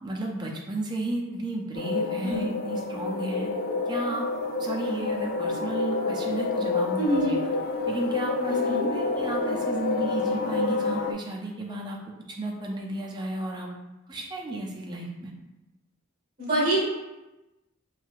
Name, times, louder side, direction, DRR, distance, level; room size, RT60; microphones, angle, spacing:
voice 1, 0.0-3.5 3.9-4.3 4.6-7.5 7.9-12.0 12.3-13.7 14.1-15.3, right 2 dB, 20° right, -1 dB, 0.4 m, -33 dB
sound 1, 1.7-11.1, left 3 dB, 45° left, 0.3 m, -28 dB
voice 2, 7.0-7.4 8.5-8.9 16.4-16.8, right 1 dB, 40° right, -5 dB, 1.2 m, -26 dB
3.2 x 2.6 x 2.4 m, 1.0 s
head